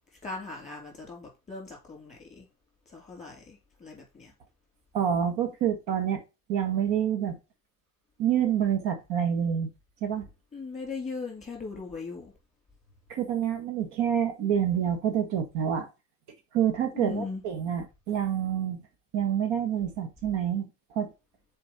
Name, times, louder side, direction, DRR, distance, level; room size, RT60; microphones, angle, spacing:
voice 1, 0.2-2.5 2.9-4.3 10.5-12.3 16.9-17.4, left 4 dB, 15° left, 3.3 m, -39 dB
voice 2, 4.9-6.2 6.5-7.4 8.2-9.7 10.0-10.2 13.1-15.9 16.5-18.8 19.1-21.1, right 9 dB, 60° right, 1.6 m, -27 dB
6.5 x 4.5 x 4.3 m
cardioid pair, 125°, 47 cm